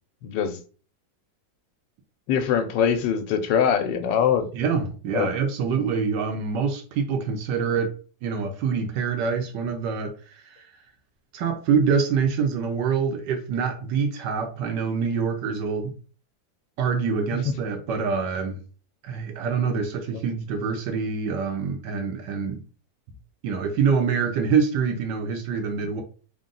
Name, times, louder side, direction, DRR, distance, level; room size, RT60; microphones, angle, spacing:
voice 1, 0.2-0.6 2.3-4.5 5.1-5.3 20.1-20.2, left 8 dB, 85° left, 1.3 m, -23 dB
voice 2, 4.5-7.9 8.2-10.1 10.5-10.6 11.3-15.9 16.8-18.6 19.0-22.6 23.4-26.0, right 6 dB, 75° right, 1.3 m, -25 dB
3.7 x 2.2 x 3.8 m
omnidirectional pair, 1.9 m